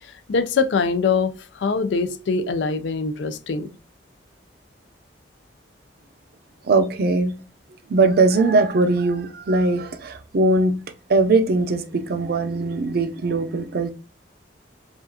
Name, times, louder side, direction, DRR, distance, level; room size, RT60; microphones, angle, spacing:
voice 1, 0.3-3.7, left 4 dB, 75° left, 0.4 m, -23 dB
voice 2, 6.6-7.3 7.9-10.8 11.1-13.9, right 3 dB, 60° right, 0.5 m, -20 dB
4.8 x 2.4 x 2.7 m
head